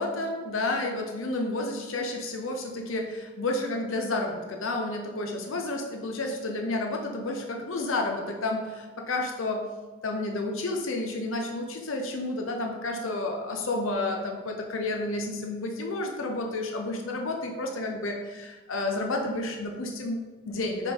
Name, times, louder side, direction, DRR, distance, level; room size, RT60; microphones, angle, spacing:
voice 1, 0.0-9.6 10.0-20.9, left 2 dB, 80° left, 2 dB, 0.8 m, -31 dB
5.7 x 4.9 x 3.8 m, 1.2 s
head